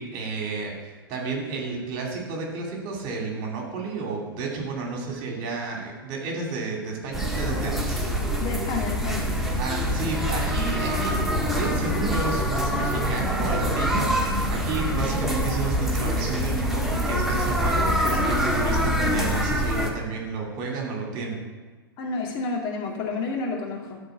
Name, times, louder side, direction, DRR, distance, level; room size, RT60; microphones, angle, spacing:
voice 1, 0.0-8.0 9.6-21.4, right 4 dB, 40° right, 0 dB, 2.6 m, -31 dB
sound 1, 7.1-19.9, equal, 5° right, 1.6 m, -25 dB
voice 2, 8.4-9.3 22.0-24.0, left 4 dB, 40° left, 0 dB, 2.1 m, -30 dB
12.0 x 4.5 x 6.9 m, 1.3 s
figure-of-eight pair, 95°, 12 cm